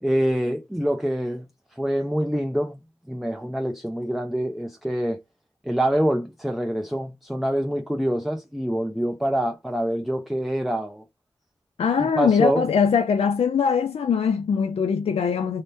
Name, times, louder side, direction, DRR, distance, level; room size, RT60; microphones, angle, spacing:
voice 1, 0.0-1.5 1.7-2.8 3.1-5.2 5.6-11.0 12.0-12.7, equal, ahead, 0.5 m, -25 dB
voice 2, 11.8-15.6, left 6 dB, 65° left, 0.4 m, -22 dB
2.6 x 2.1 x 3.3 m
cardioid pair, 45°, 11 cm